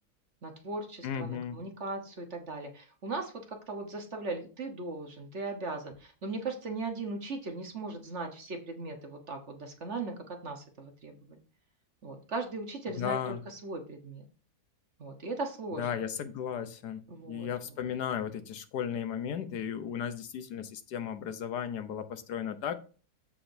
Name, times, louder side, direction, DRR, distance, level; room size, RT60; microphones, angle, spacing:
voice 1, 0.4-11.4 12.0-14.2 15.0-15.9 17.1-17.8, right 3 dB, 45° right, 4 dB, 1.5 m, -38 dB
voice 2, 1.0-1.6 13.0-13.4 15.8-22.7, left 8 dB, 80° left, 9 dB, 1.5 m, -35 dB
14.0 x 5.0 x 2.7 m, 0.37 s
omnidirectional pair, 1.7 m